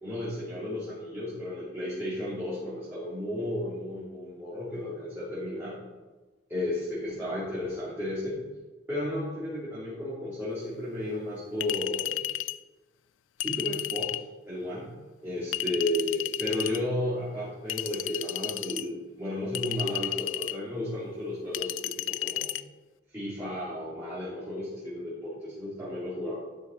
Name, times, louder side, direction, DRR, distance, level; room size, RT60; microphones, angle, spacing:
voice 1, 0.0-5.8 6.5-8.4 8.9-12.2 13.4-14.2 14.5-14.9 15.2-22.5 23.1-26.3, left 1 dB, 10° right, -12 dB, 3.0 m, -33 dB
Chink clink, 11.6-12.6 13.4-14.3 15.5-16.8 17.7-18.9 19.5-20.6 21.5-22.6, left 14 dB, 70° left, 0.3 m, -33 dB
12.0 x 6.6 x 4.6 m, 1.2 s
head